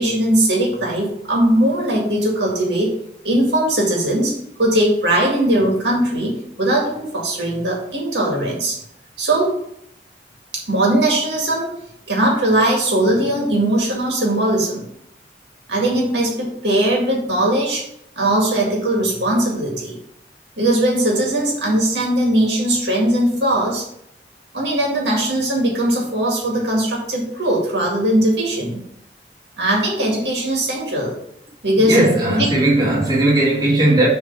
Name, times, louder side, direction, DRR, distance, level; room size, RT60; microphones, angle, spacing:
voice 1, 0.0-2.9 3.2-8.8 9.2-9.6 10.5-11.7 12.1-14.9 15.7-17.8 18.2-19.9 20.6-23.8 24.5-28.8 29.6-31.1 31.6-32.0 32.3-32.5, right 1 dB, 85° right, 2.0 m, -19 dB
voice 2, 31.8-34.1, right 1 dB, 25° right, 2.8 m, -16 dB
7.1 x 3.5 x 5.7 m
head